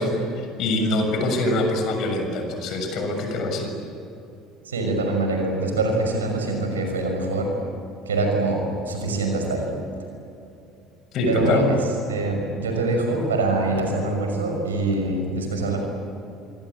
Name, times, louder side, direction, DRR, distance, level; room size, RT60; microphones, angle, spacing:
voice 1, 0.0-3.7 11.1-11.6, left 1 dB, 55° left, 4 dB, 6.9 m, -24 dB
voice 2, 4.6-7.5 8.1-9.7 11.3-11.8 12.1-15.8, right 2 dB, 85° right, 3 dB, 6.0 m, -24 dB
27.5 x 23.0 x 8.6 m, 2.7 s
hypercardioid pair, 60°, 0 cm